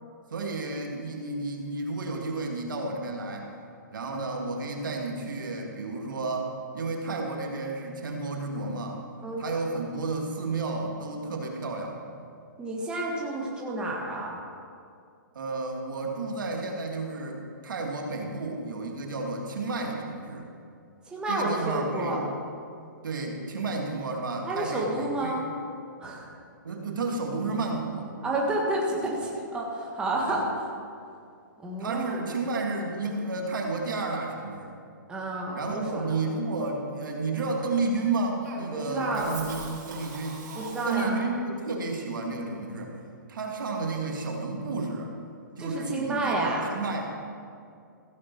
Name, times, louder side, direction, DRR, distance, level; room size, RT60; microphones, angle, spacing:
voice 1, 0.3-3.5 3.9-9.0 9.4-12.0 15.3-20.5 21.3-22.2 23.0-25.3 26.6-28.1 30.3-30.4 31.8-34.8 35.5-40.5 40.9-43.0 43.3-45.1 45.6-47.1, right 3 dB, 75° right, 1 dB, 2.1 m, -32 dB
voice 2, 9.2-9.5 12.6-14.4 21.1-22.2 24.4-25.4 26.0-26.3 28.2-30.7 31.6-32.2 35.1-36.1 38.7-39.3 40.5-41.2 45.6-46.7, right 2 dB, 10° right, -3 dB, 1.4 m, -30 dB
Cough, 38.4-41.4, right 4 dB, 60° right, 3.2 m, -41 dB
15.5 x 8.6 x 4.5 m, 2.4 s
hypercardioid pair, 155°, 11 cm